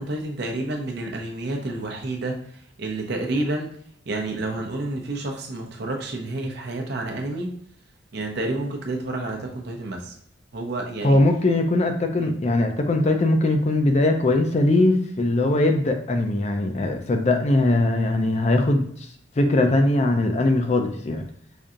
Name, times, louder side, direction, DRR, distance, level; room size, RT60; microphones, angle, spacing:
voice 1, 0.0-3.7 4.1-7.5 8.1-10.1 10.5-11.2 12.2-12.3, right 2 dB, 60° right, 1 dB, 0.7 m, -29 dB
voice 2, 11.0-18.9 19.4-21.2, left 2 dB, 35° left, 5 dB, 0.4 m, -20 dB
5.2 x 2.7 x 2.4 m, 0.64 s
head